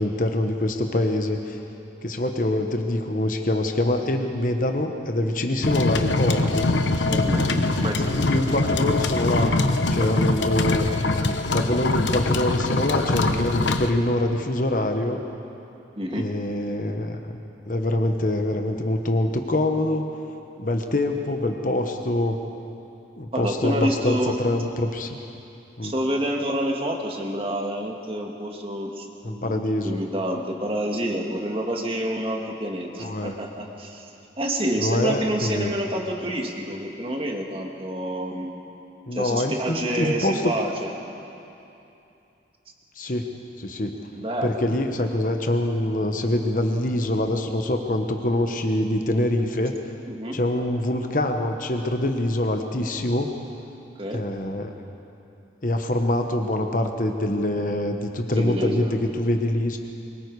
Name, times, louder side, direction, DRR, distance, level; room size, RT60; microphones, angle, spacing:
voice 1, 0.0-1.6 2.0-6.7 8.0-9.6 9.9-10.9 11.5-15.2 16.1-17.2 17.7-20.1 20.6-22.4 23.2-25.1 25.8-25.9 29.2-30.0 33.0-33.3 34.8-35.7 39.1-40.5 43.0-43.3 43.6-43.9 44.4-49.8 50.3-53.3 54.1-54.7 55.6-59.8, left 1 dB, 45° left, 4 dB, 1.1 m, -25 dB
sound 1, 5.6-13.9, left 2 dB, 80° left, 1.1 m, -23 dB
voice 2, 7.1-8.4 16.0-16.3 23.3-24.4 25.8-34.1 34.4-38.6 39.1-40.9 43.0-43.1 44.1-44.6 50.1-50.4 54.0-54.2 58.4-58.9, right 1 dB, 30° right, 1 dB, 1.9 m, -28 dB
24.5 x 22.5 x 4.8 m, 2.8 s
head